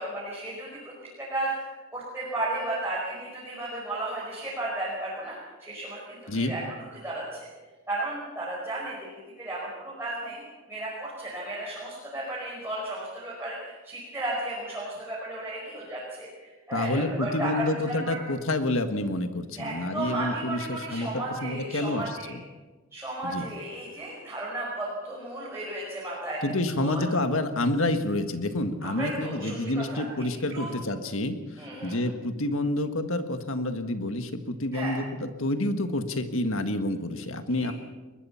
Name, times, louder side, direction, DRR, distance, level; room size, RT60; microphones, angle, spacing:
voice 1, 0.0-7.5 7.9-9.0 9.4-18.2 19.6-22.4 22.9-26.4 26.8-27.0 28.8-30.0 30.5-30.7 31.6-32.0 34.7-35.0 37.5-37.7, right 2 dB, 10° right, -6 dB, 5.3 m, -34 dB
voice 2, 16.7-22.4 23.2-23.5 26.4-37.7, left 1 dB, 65° left, 8 dB, 1.7 m, -28 dB
23.0 x 20.5 x 5.7 m, 1.3 s
head